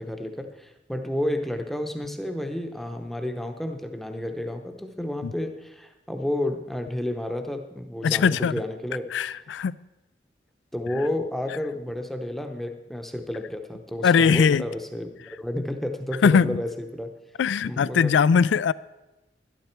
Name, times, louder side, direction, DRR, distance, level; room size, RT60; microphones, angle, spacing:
voice 1, 0.0-9.1 10.7-17.1 17.6-18.1, left 1 dB, ahead, 5 dB, 0.8 m, -31 dB
voice 2, 8.0-8.5 9.1-9.7 14.0-14.6 16.2-16.6 17.4-18.7, left 6 dB, 80° left, 19 dB, 0.3 m, -20 dB
12.0 x 11.5 x 4.4 m, 1.0 s
head